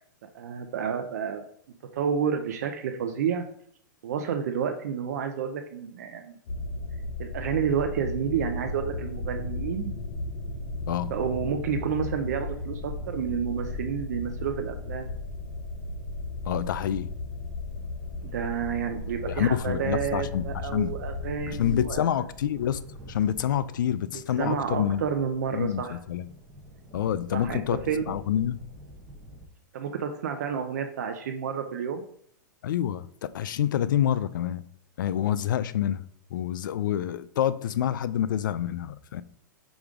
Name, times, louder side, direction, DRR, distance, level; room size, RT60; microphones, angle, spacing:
voice 1, 0.3-1.4 1.9-3.4 4.0-6.4 7.2-9.9 11.0-15.1 18.2-22.2 24.1-26.0 27.3-27.6 27.9-28.2 29.7-32.0, right 7 dB, 55° right, 0.6 m, -30 dB
sound 1, 6.5-21.9, left 2 dB, 45° left, 0.9 m, -35 dB
sound 2, 14.0-16.3 16.6-16.8 17.1-17.2 17.4-17.5 17.7-29.5, equal, 10° right, 0.8 m, -48 dB
voice 2, 16.5-17.1 19.3-20.9 21.5-22.8 23.1-25.0 25.5-26.3 26.9-27.8 28.1-28.6 32.6-33.0 33.3-34.6 35.0-36.0 36.3-39.2, left 10 dB, 75° left, 0.4 m, -27 dB
5.1 x 5.0 x 3.7 m
supercardioid pair, 180°, 11 cm